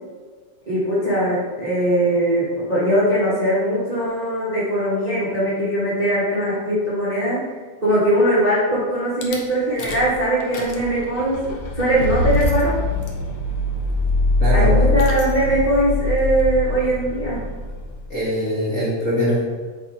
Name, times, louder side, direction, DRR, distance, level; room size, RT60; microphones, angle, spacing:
voice 1, 0.7-7.4 7.8-11.4 11.7-12.8 14.5-17.4, right 1 dB, 75° right, -9 dB, 0.3 m, -20 dB
Rattle / Car / Engine starting, 9.2-9.4 9.8-10.1 10.4-18.1, left 2 dB, 80° left, 1.2 m, -23 dB
voice 2, 14.4-14.9 18.1-19.4, equal, 45° left, -9 dB, 1.0 m, -22 dB
7.9 x 2.8 x 4.3 m, 1.5 s
omnidirectional pair, 3.3 m